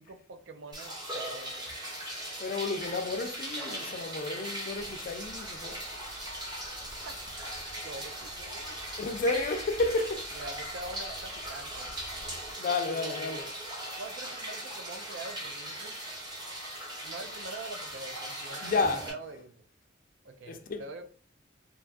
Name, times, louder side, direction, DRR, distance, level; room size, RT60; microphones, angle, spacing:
voice 1, 0.0-1.7 7.0-7.2 7.8-8.7 10.3-11.9 12.9-13.5 14.0-16.0 17.0-19.7 20.2-21.1, right 3 dB, 65° right, 0.4 m, -44 dB
sound 1, 0.7-19.1, right 1 dB, 20° right, 0.8 m, -39 dB
voice 2, 2.4-5.8 9.0-10.3 12.6-13.5 18.6-19.1 20.5-20.8, left 3 dB, 45° left, 0.4 m, -31 dB
sound 2, 4.7-12.5, equal, 90° right, 1.4 m, -52 dB
2.9 x 2.3 x 2.4 m
head